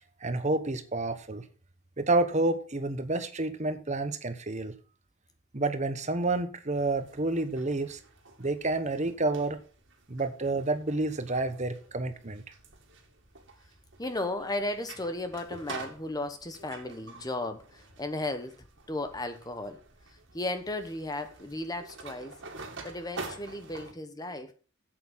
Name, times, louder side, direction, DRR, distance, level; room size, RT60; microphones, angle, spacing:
voice 1, 0.2-1.4 2.0-4.7 5.5-8.0 8.4-9.6 10.1-12.4, right 2 dB, 35° right, 1.1 m, -29 dB
sound 1, 6.7-23.9, right 3 dB, 60° right, 2.2 m, -48 dB
voice 2, 14.0-19.8 20.3-22.4 22.8-24.5, left 2 dB, 20° left, 0.9 m, -35 dB
8.1 x 7.9 x 6.2 m
head